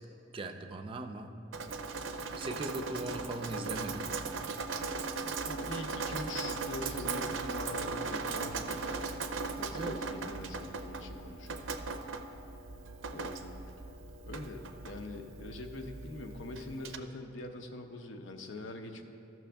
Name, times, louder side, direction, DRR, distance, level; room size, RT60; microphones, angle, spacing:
voice 1, 0.3-1.3 2.4-4.3 9.7-10.0, right 2 dB, 30° right, 6 dB, 0.4 m, -39 dB
Drip, 1.5-17.0, right 4 dB, 85° right, 0.5 m, -38 dB
voice 2, 5.0-9.0 9.6-11.7 13.1-13.5 14.2-19.0, left 2 dB, 75° left, 4 dB, 0.7 m, -44 dB
14.0 x 6.1 x 3.4 m, 2.8 s
head